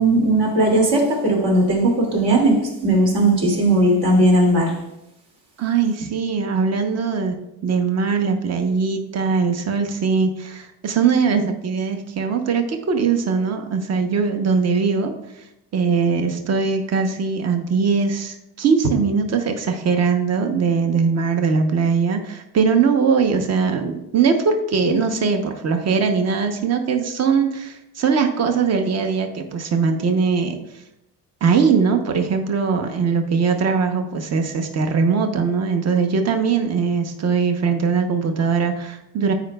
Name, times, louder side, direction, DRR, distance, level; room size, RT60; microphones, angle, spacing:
voice 1, 0.0-4.8, right 1 dB, 65° right, -1 dB, 2.4 m, -17 dB
voice 2, 5.6-7.4 7.6-15.1 15.7-30.6 31.4-39.3, right 5 dB, 40° right, 6 dB, 0.8 m, -20 dB
14.0 x 5.0 x 2.3 m, 0.86 s
cardioid pair, 145°, 40 cm